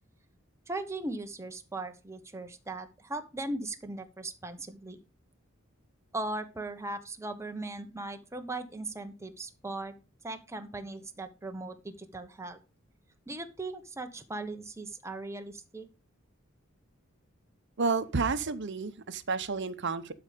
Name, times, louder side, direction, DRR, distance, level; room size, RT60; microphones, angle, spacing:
voice 1, 0.7-5.0 6.1-9.9 10.2-12.6 13.3-15.9, right 2 dB, 15° right, 1.0 m, -38 dB
voice 2, 17.8-20.1, right 4 dB, 60° right, 0.9 m, -30 dB
12.0 x 5.0 x 5.0 m
head